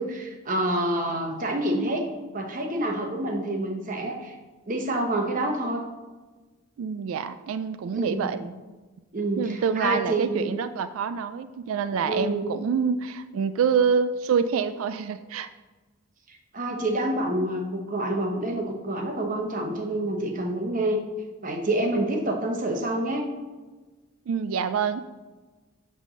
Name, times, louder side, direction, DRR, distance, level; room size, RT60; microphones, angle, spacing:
voice 1, 0.0-2.1 2.3-4.4 4.7-5.8 7.9-8.3 9.1-10.5 12.0-12.5 16.3-21.0 21.4-23.3, right 1 dB, 40° right, 2 dB, 1.0 m, -27 dB
voice 2, 6.8-8.5 9.4-15.5 24.3-25.0, right 6 dB, 75° right, 12 dB, 0.3 m, -26 dB
7.5 x 3.5 x 6.3 m, 1.3 s
head